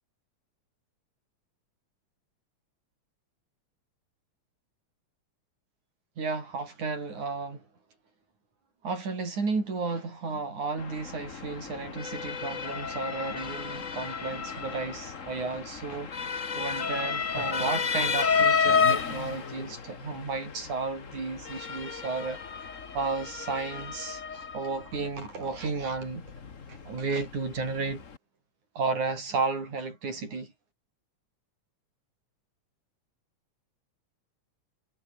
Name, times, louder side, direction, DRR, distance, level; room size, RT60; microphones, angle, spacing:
voice 1, 6.2-7.6 8.8-16.1 16.6-22.4 22.9-26.3 26.7-28.0 28.8-30.5, right 4 dB, 85° right, 7.9 m, -33 dB
Motor vehicle (road) / Siren, 10.8-28.2, left 5 dB, 35° left, 1.5 m, -32 dB
omnidirectional pair, 3.3 m